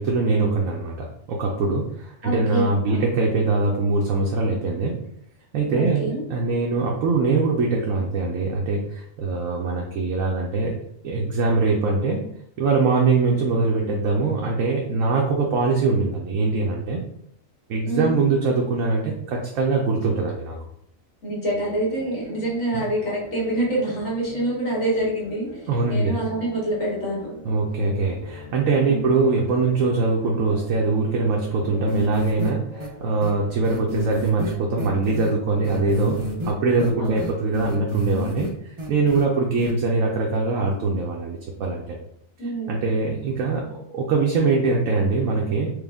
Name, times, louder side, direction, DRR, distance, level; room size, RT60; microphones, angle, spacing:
voice 1, 0.0-5.0 5.5-10.7 11.0-12.2 12.6-17.0 17.7-20.6 22.7-22.8 25.7-26.1 27.5-38.5 38.9-42.0 42.7-45.7, right 3 dB, 80° right, -1 dB, 1.1 m, -22 dB
voice 2, 2.2-3.0 5.7-6.2 17.8-18.2 21.2-27.3 28.9-29.1 37.0-37.3 42.4-42.8, right 1 dB, 60° left, -5 dB, 2.1 m, -26 dB
sound 1, 21.5-37.5, left 2 dB, 30° left, 0.8 m, -42 dB
sound 2, 31.9-32.5 32.8-32.9 33.2-33.3 33.6-35.3 35.6-36.5 36.8-38.5 38.8-39.2 39.6-39.7, equal, 40° right, 0.4 m, -30 dB
4.8 x 2.2 x 3.5 m, 0.71 s
omnidirectional pair, 1.4 m